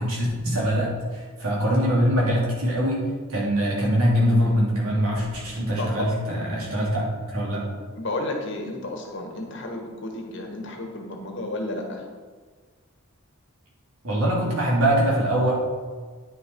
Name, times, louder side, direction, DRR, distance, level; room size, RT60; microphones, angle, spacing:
voice 1, 0.0-7.0 7.3-7.6 14.0-15.5, equal, 75° right, -4 dB, 3.0 m, -23 dB
voice 2, 5.8-6.1 6.5-6.9 8.0-12.0, left 2 dB, 55° left, 2 dB, 1.5 m, -32 dB
9.6 x 6.4 x 4.6 m, 1.5 s
head